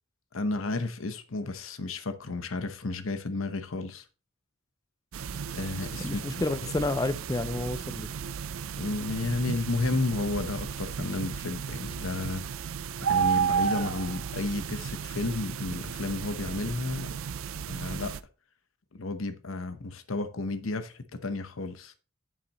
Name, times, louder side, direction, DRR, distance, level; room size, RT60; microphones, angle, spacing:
voice 1, 0.3-4.0 5.5-6.4 8.8-12.4 13.0-17.2 17.7-18.1 18.9-21.9, left 2 dB, 80° left, 0.9 m, -32 dB
sound 1, 5.1-18.2, right 7 dB, 80° right, 0.5 m, -33 dB
voice 2, 6.0-8.1, left 2 dB, 15° left, 0.3 m, -30 dB
8.3 x 7.4 x 3.0 m
head